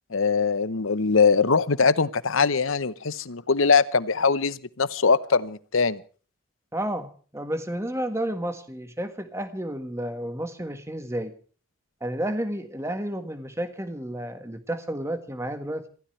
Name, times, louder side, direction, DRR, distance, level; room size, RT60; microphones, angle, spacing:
voice 1, 0.1-6.0, left 5 dB, 75° left, 0.9 m, -22 dB
voice 2, 6.7-11.3 12.0-15.9, right 1 dB, 15° right, 1.5 m, -31 dB
26.5 x 15.5 x 3.3 m
head